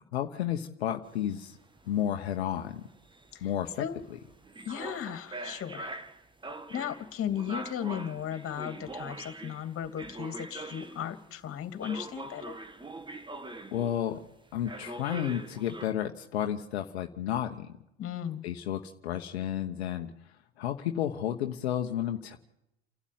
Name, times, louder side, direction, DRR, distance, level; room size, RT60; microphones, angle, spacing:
voice 1, 0.1-1.6 1.9-2.8 3.4-3.9 13.7-14.2 14.5-17.7 18.4-22.4, left 11 dB, 80° left, 4 dB, 1.1 m, -32 dB
sound 1, 1.1-11.3 11.8-14.3 14.6-15.9, right 2 dB, 15° right, 1.7 m, -43 dB
voice 2, 4.6-5.9 6.7-12.6 18.0-18.5, left 9 dB, 45° left, 8 dB, 2.7 m, -36 dB
29.5 x 12.5 x 9.4 m, 0.88 s
hypercardioid pair, 70°, 32 cm